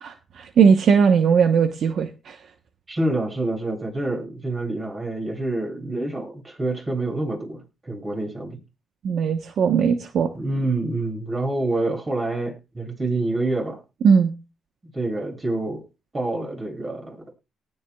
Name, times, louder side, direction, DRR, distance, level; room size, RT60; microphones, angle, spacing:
voice 1, 0.0-2.4 9.0-10.3 14.0-14.3, right 6 dB, 65° right, 8 dB, 1.0 m, -19 dB
voice 2, 2.9-8.6 10.3-13.8 14.9-15.8 16.1-17.3, right 2 dB, 25° right, 1 dB, 7.6 m, -27 dB
19.0 x 9.8 x 2.3 m, 0.27 s
cardioid pair, 90°, 0 cm